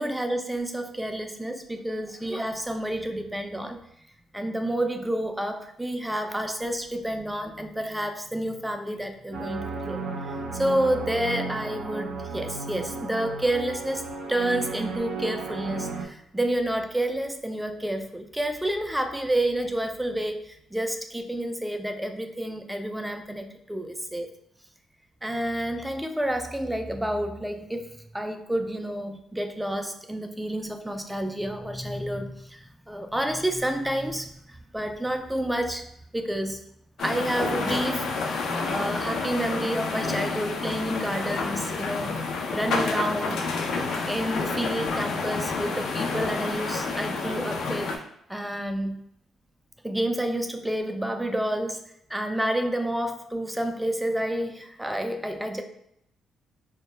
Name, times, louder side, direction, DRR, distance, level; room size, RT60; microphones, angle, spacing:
voice 1, 0.0-3.8 4.3-24.3 25.2-35.8 36.1-36.6 37.0-42.1 42.5-47.9 48.3-49.0 49.8-55.6, right 1 dB, 5° right, 6 dB, 0.3 m, -29 dB
sound 1, 9.3-16.0, right 4 dB, 85° right, 0.5 m, -34 dB
sound 2, 37.0-48.0, left 4 dB, 70° left, 0.3 m, -29 dB
2.1 x 2.0 x 3.1 m, 0.74 s
cardioid pair, 90°, 0 cm